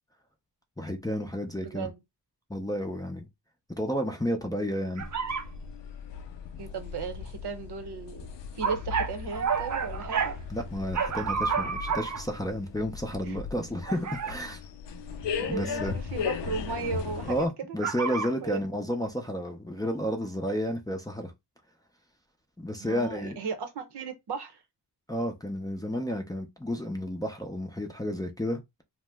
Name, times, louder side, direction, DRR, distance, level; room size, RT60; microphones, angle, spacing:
voice 1, 0.8-1.9 2.5-3.3 3.8-5.0 10.5-14.6 15.5-15.9 17.3-21.3 22.6-23.4 25.1-28.6, equal, 10° left, 0.5 m, -31 dB
voice 2, 1.6-2.0 6.6-8.3 8.5-10.3 13.2-13.4 15.5-17.8 18.4-18.6 22.8-24.6, right 5 dB, 70° right, 0.8 m, -36 dB
sound 1, 5.0-17.5, left 6 dB, 85° left, 0.6 m, -38 dB
sound 2, 5.0-5.4 8.6-10.4 10.9-12.2 13.9-14.4 17.8-18.3, right 6 dB, 45° right, 0.6 m, -29 dB
2.7 x 2.1 x 3.3 m
wide cardioid pair, 115°, 41 cm